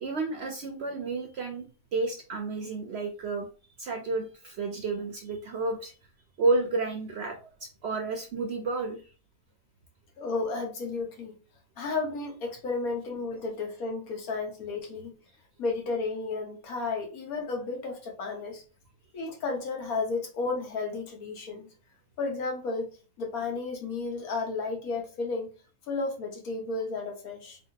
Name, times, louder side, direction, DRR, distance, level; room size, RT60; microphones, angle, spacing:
voice 1, 0.0-1.6 1.9-3.5 3.8-5.9 6.4-9.0, right 3 dB, 60° right, 4 dB, 0.7 m, -31 dB
voice 2, 10.2-11.3 11.8-15.1 15.6-18.6 19.1-21.7 22.2-22.9 23.2-25.5 25.9-27.6, left 3 dB, 75° left, 1 dB, 1.5 m, -33 dB
3.8 x 3.3 x 2.8 m, 0.36 s
omnidirectional pair, 1.6 m